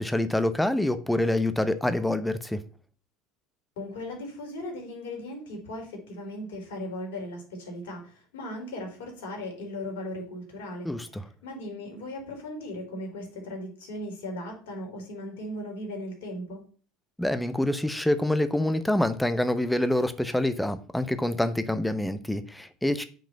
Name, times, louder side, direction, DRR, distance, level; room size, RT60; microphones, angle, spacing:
voice 1, 0.0-2.6 10.8-11.2 17.2-23.0, left 1 dB, 5° left, 0.8 m, -26 dB
voice 2, 3.8-10.9 11.4-16.6, left 1 dB, 65° left, 3.6 m, -37 dB
9.0 x 5.0 x 5.7 m
figure-of-eight pair, 70°, 0 cm